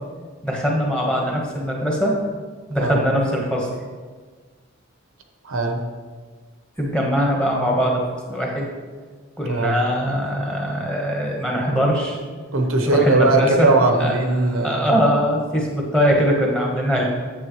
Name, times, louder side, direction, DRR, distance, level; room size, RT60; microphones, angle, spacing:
voice 1, 0.4-2.2 2.7-3.7 6.8-8.0 8.3-8.7 9.4-12.2 12.9-13.7 14.0-14.1 14.4-17.0, equal, 5° left, -2 dB, 1.2 m, -21 dB
voice 2, 5.4-5.9 9.4-9.8 12.5-14.9, right 2 dB, 80° right, 4 dB, 0.9 m, -19 dB
8.4 x 7.4 x 3.1 m, 1.5 s
head